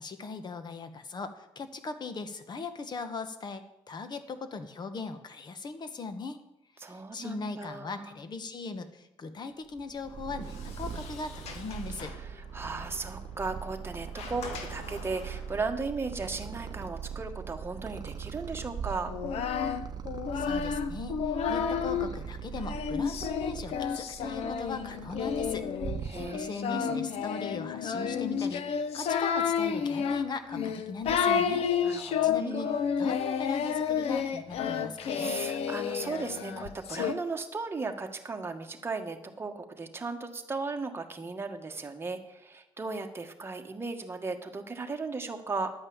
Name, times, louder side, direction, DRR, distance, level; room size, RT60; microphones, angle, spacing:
voice 1, 0.0-6.4 7.1-12.1 20.3-25.6 26.3-31.6 32.0-32.7 33.0-35.4, left 4 dB, 45° left, 10 dB, 1.2 m, -39 dB
voice 2, 6.8-8.2 12.1-19.1 26.0-27.1 31.8-32.8 35.0-45.7, right 4 dB, 25° right, 4 dB, 1.4 m, -36 dB
Purr, 9.8-26.6, right 7 dB, 40° right, 0.9 m, -41 dB
Sliding door, 10.1-15.6, left 5 dB, 90° left, 1.5 m, -47 dB
Singing, 19.1-22.1 22.7-37.1, left 7 dB, 75° left, 0.9 m, -30 dB
11.0 x 5.4 x 8.7 m, 0.89 s
cardioid pair, 100°, 11 cm